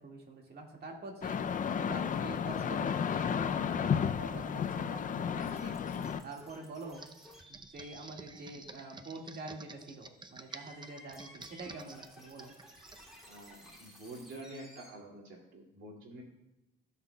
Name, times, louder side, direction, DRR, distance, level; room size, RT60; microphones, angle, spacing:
voice 1, 0.0-3.3 3.7-5.8 6.2-7.1 7.5-12.5, right 2 dB, 55° right, 0 dB, 1.9 m, -46 dB
sound 1, 1.2-6.2, left 7 dB, 40° left, 0.5 m, -32 dB
sound 2, 5.4-14.9, left 1 dB, ahead, 2.5 m, -57 dB
Computer keyboard, 6.9-13.0, right 3 dB, 20° right, 0.6 m, -51 dB
voice 2, 13.3-16.2, right 1 dB, 80° right, 0 dB, 2.5 m, -48 dB
16.5 x 5.7 x 2.3 m, 0.98 s
cardioid pair, 90°, 20 cm